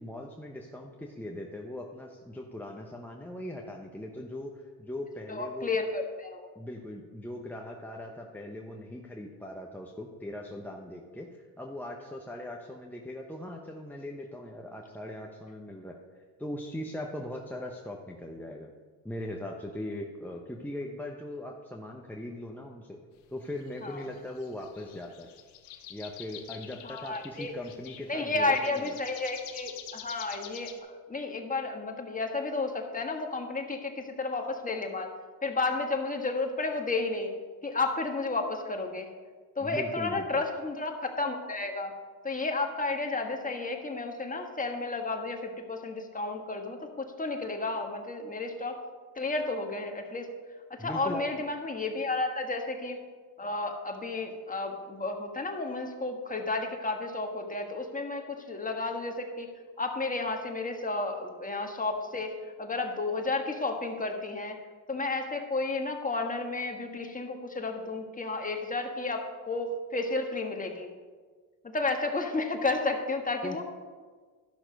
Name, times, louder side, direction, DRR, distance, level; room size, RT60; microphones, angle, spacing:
voice 1, 0.0-5.7 6.5-18.7 19.0-23.0 23.3-25.3 25.9-29.0 39.6-40.4 50.8-51.3 73.4-73.6, left 1 dB, 5° left, -1 dB, 0.9 m, -40 dB
voice 2, 5.3-6.5 23.8-24.1 26.8-27.5 28.1-35.1 35.4-37.3 37.6-39.1 39.5-41.9 42.2-48.8 49.1-50.3 50.7-53.0 53.4-59.5 59.8-62.3 62.6-64.6 64.9-70.9 71.6-73.6, left 3 dB, 20° left, 4 dB, 1.5 m, -32 dB
sound 1, 23.5-30.8, left 10 dB, 85° left, 1.0 m, -47 dB
12.5 x 6.0 x 5.2 m, 1.5 s
supercardioid pair, 75°, 41 cm